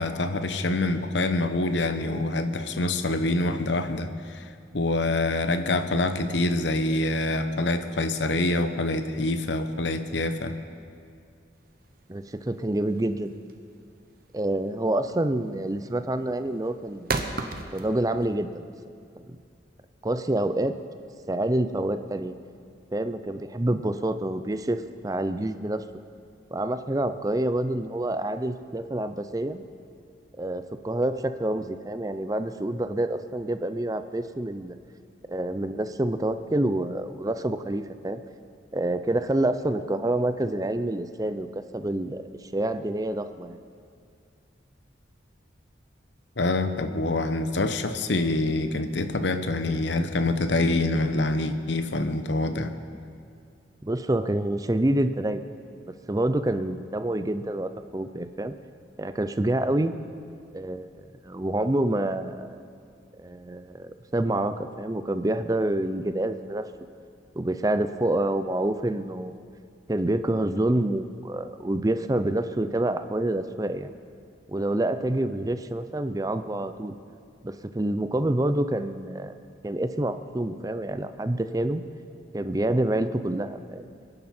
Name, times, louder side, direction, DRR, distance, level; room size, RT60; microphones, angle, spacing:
voice 1, 0.0-4.5 4.7-10.6 46.4-52.7, left 2 dB, 70° left, 9 dB, 0.9 m, -26 dB
sound 1, 11.6-18.4, right 3 dB, 50° right, 0.9 m, -35 dB
voice 2, 12.1-13.3 14.3-17.2 17.7-18.6 19.2-19.4 20.0-20.7 21.3-22.3 22.9-25.8 26.5-29.6 30.4-34.8 35.3-38.2 38.7-42.2 42.5-43.6 53.8-55.4 56.1-58.5 59.0-59.9 60.5-60.9 61.2-62.5 63.2-66.7 67.4-69.3 69.9-73.9 74.5-77.0 77.4-79.4 79.6-81.8 82.3-83.9, right 1 dB, 20° right, 10 dB, 0.5 m, -27 dB
23.0 x 10.5 x 4.3 m, 2.3 s
head